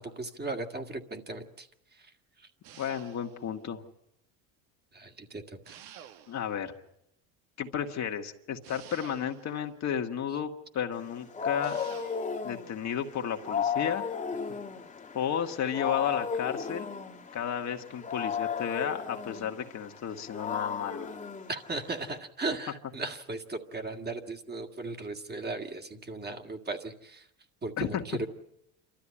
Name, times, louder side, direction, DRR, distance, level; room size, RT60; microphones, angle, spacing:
voice 1, 0.0-2.5 4.9-5.8 21.5-27.3 27.6-28.3, right 3 dB, 25° right, 5 dB, 2.0 m, -37 dB
sound 1, 2.6-3.5 5.7-6.6 8.6-9.7 11.6-12.4, right 9 dB, 85° right, 1.6 m, -50 dB
voice 2, 2.8-3.8 6.3-6.7 7.6-11.8 12.4-14.1 15.1-16.9 17.3-21.1 27.8-28.0, left 8 dB, 45° left, 4 dB, 1.7 m, -33 dB
Wild animals, 11.0-22.2, left 6 dB, 20° left, 1.7 m, -35 dB
27.5 x 13.5 x 9.9 m, 0.83 s
supercardioid pair, 105°, 39 cm